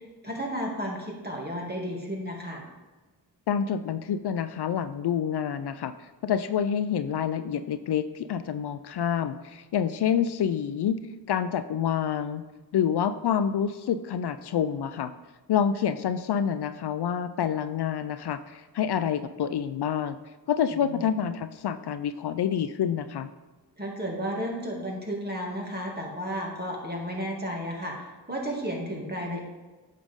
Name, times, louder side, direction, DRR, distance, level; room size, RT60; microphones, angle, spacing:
voice 1, 0.2-2.7 20.7-21.0 23.8-29.4, equal, 20° right, -1 dB, 2.3 m, -33 dB
voice 2, 3.5-11.0 11.3-12.4 12.7-15.1 15.5-20.2 20.5-23.3, left 8 dB, 65° left, 12 dB, 0.5 m, -27 dB
8.8 x 6.6 x 3.6 m, 1.2 s
cardioid pair, 50°, 43 cm